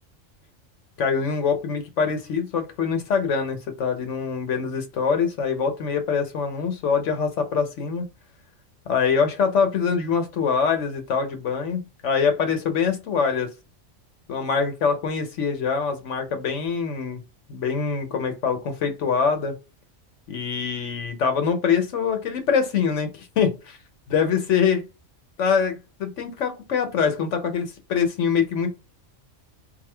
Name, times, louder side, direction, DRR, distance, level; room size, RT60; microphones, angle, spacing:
voice 1, 1.0-8.1 8.9-13.5 14.3-17.2 17.5-19.5 20.3-23.8 24.1-24.8 25.4-28.7, left 6 dB, 70° left, 1.1 m, -24 dB
3.6 x 2.7 x 3.3 m
omnidirectional pair, 1.3 m